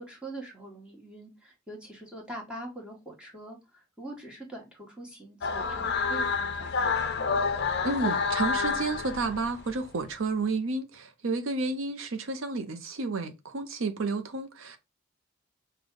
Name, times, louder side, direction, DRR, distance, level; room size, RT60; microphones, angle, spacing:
voice 1, 0.0-7.0, right 1 dB, 5° right, 1.2 m, -43 dB
sound 1, 5.4-9.8, left 5 dB, 50° left, 0.5 m, -29 dB
voice 2, 7.8-14.8, right 3 dB, 75° right, 0.6 m, -31 dB
5.2 x 2.2 x 3.7 m
head